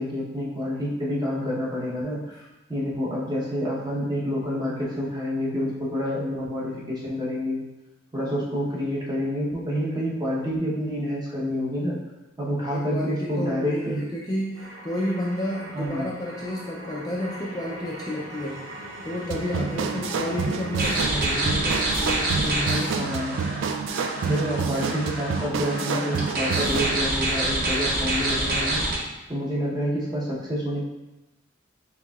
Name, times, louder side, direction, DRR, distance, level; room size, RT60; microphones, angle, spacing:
voice 1, 0.0-2.2 2.7-7.6 8.1-12.0 12.4-14.0 15.7-16.1 22.9-23.4 24.2-28.9 29.3-30.8, equal, 20° right, -6 dB, 0.9 m, -28 dB
voice 2, 12.7-18.6 19.0-23.1, left 1 dB, 20° left, -5 dB, 0.4 m, -31 dB
sound 1, 14.6-21.7, right 1 dB, 90° right, 0.8 m, -40 dB
sound 2, 19.3-27.0, right 5 dB, 70° right, 0.3 m, -29 dB
sound 3, 20.8-29.0, right 1 dB, 45° right, 0.7 m, -27 dB
4.7 x 3.5 x 2.3 m, 1.0 s
head